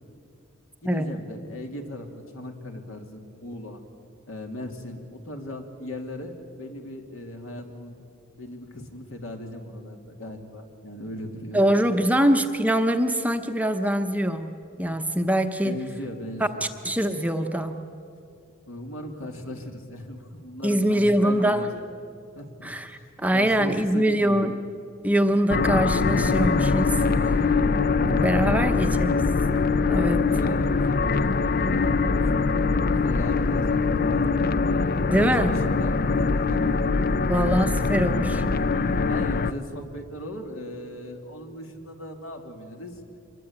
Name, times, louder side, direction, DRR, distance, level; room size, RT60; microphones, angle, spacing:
voice 1, 0.8-3.8 4.3-8.0 8.4-11.6 15.6-16.6 18.7-24.5 28.4-28.9 29.9-34.5 35.1-36.0 36.3-36.8 37.3-37.9 39.0-43.0, left 1 dB, 70° left, 3 dB, 2.8 m, -38 dB
voice 2, 11.5-15.8 16.8-17.8 20.6-21.7 22.6-22.9 23.2-24.6 25.0-27.6 28.1-29.1 29.9-30.2 35.1-35.5 37.3-38.4, right 1 dB, 5° right, 6 dB, 0.8 m, -23 dB
sound 1, 25.5-39.5, left 4 dB, 45° left, 0.5 m, -23 dB
25.0 x 22.0 x 8.7 m, 2.5 s
head